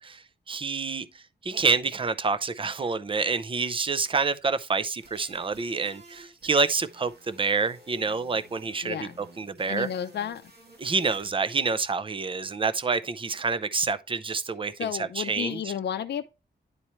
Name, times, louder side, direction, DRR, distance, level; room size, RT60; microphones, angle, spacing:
voice 1, 0.0-1.1 1.4-9.9 10.8-15.7, right 4 dB, 30° right, 0.5 m, -28 dB
sound 1, 5.0-11.3, right 1 dB, 60° right, 2.2 m, -53 dB
voice 2, 9.7-10.4 14.8-16.2, left 9 dB, 70° left, 0.5 m, -32 dB
9.8 x 4.3 x 3.1 m
wide cardioid pair, 140°, 18 cm